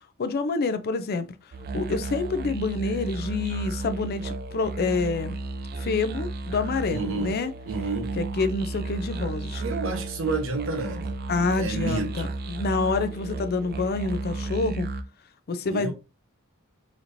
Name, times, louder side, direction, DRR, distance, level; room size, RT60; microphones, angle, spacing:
voice 1, 0.2-1.3 1.7-5.4 5.8-7.5 8.2-9.6 11.3-14.9 15.5-15.9, left 4 dB, 45° left, 0.4 m, -27 dB
sound 1, 1.5-15.0, right 2 dB, 45° right, 0.4 m, -33 dB
voice 2, 6.9-7.3 7.7-8.1 9.6-12.3 15.6-15.9, right 3 dB, 65° right, 1.0 m, -30 dB
4.2 x 2.9 x 2.6 m
head